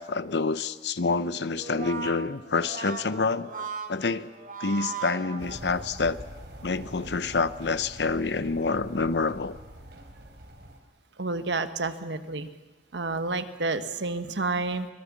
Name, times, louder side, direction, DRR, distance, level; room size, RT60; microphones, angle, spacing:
voice 1, 0.0-4.3 4.6-6.2 6.6-9.6, left 4 dB, 80° left, 15 dB, 0.8 m, -27 dB
Brass instrument, 1.5-6.0, right 5 dB, 50° right, 1.6 m, -38 dB
sound 1, 5.4-10.8, right 1 dB, 70° right, 3.3 m, -44 dB
voice 2, 11.2-12.5 12.9-14.9, right 3 dB, 90° right, 9 dB, 1.3 m, -30 dB
24.5 x 18.5 x 7.4 m, 1.2 s
head